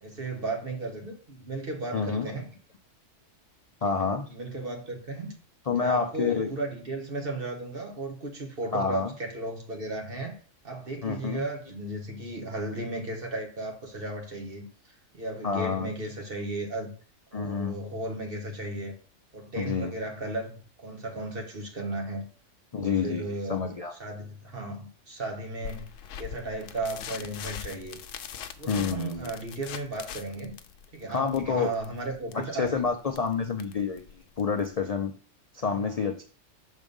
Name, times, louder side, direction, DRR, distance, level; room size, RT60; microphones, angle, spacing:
voice 1, 0.0-2.5 4.3-5.3 5.7-10.3 10.6-14.7 15.1-16.9 17.3-18.9 19.3-22.3 22.8-23.6 24.0-25.9 26.2-28.0 28.6-30.6 30.9-32.8 35.6-36.0, right 2 dB, 50° right, 1.6 m, -35 dB
voice 2, 1.9-2.3 3.8-4.3 5.7-6.5 8.7-9.1 11.0-11.4 15.4-15.9 17.3-17.7 19.6-19.9 22.7-23.2 23.5-23.9 28.7-29.3 31.1-31.7 32.3-34.0 34.4-35.1 35.5-36.2, left 5 dB, 45° left, 0.5 m, -28 dB
sound 1, 25.6-34.8, left 8 dB, 85° left, 1.0 m, -42 dB
6.5 x 3.6 x 5.3 m
omnidirectional pair, 1.3 m